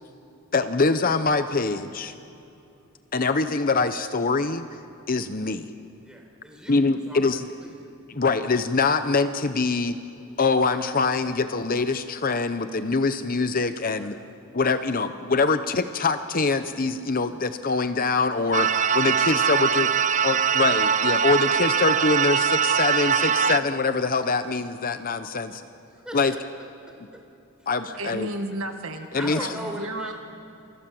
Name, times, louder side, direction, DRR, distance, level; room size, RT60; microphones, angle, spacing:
voice 1, 0.5-2.1 3.1-4.7 5.1-5.7 6.7-7.4 8.1-10.0 10.4-14.2 14.5-19.9 20.2-25.6 26.1-26.3 27.7-28.3 29.1-29.4, left 4 dB, 40° left, 10 dB, 0.8 m, -24 dB
voice 2, 6.0-8.0 13.9-14.4 25.5-26.4 26.9-27.2 27.6-28.2 29.1-30.1, equal, 5° right, 1 dB, 4.6 m, -41 dB
sound 1, 18.5-23.6, right 7 dB, 35° right, 0.6 m, -22 dB
voice 3, 28.0-30.1, right 1 dB, 65° right, 6 dB, 1.9 m, -33 dB
28.5 x 25.0 x 7.7 m, 2.7 s
head